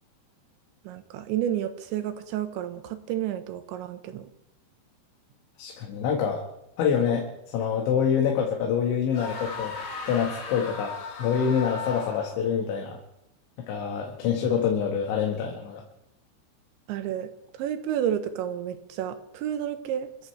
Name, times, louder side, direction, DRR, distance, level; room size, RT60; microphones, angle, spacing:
voice 1, 0.8-4.3 16.9-20.1, right 10 dB, 85° right, 9 dB, 3.4 m, -31 dB
voice 2, 5.6-6.4 6.8-9.8 10.1-13.0 13.7-15.8, left 7 dB, 90° left, 0 dB, 4.0 m, -26 dB
sound 1, 9.1-12.5, left 4 dB, 70° left, 4.8 m, -36 dB
26.5 x 15.5 x 3.3 m, 0.83 s
omnidirectional pair, 5.2 m